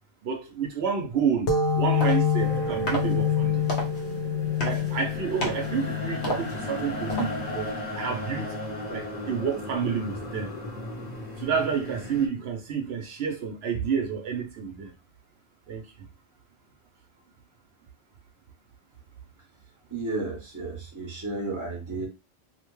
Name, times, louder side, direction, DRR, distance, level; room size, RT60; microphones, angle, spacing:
voice 1, 0.2-1.5 1.7-3.7 4.6-8.5 8.9-10.5 11.4-14.9 15.7-15.8, right 6 dB, 75° right, 0.9 m, -29 dB
sound 1, 1.5-8.8, left 6 dB, 70° left, 0.9 m, -28 dB
sound 2, 1.6-7.7, right 1 dB, 90° left, 1.2 m, -36 dB
sound 3, 2.4-12.3, left 1 dB, 45° left, 0.8 m, -36 dB
voice 2, 19.9-22.1, right 3 dB, 20° right, 0.8 m, -32 dB
2.8 x 2.1 x 3.0 m
omnidirectional pair, 1.1 m